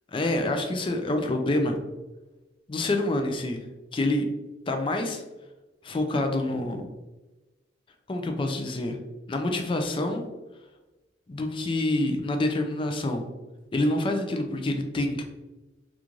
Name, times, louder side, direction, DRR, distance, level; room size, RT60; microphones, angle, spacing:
voice 1, 0.1-1.8 2.7-3.6 3.9-4.3 4.7-5.2 5.8-6.9 8.1-9.0 9.3-10.3 11.3-13.2 13.7-15.2, left 1 dB, 30° left, 5 dB, 0.4 m, -27 dB
3.7 x 2.4 x 3.0 m, 1.1 s
head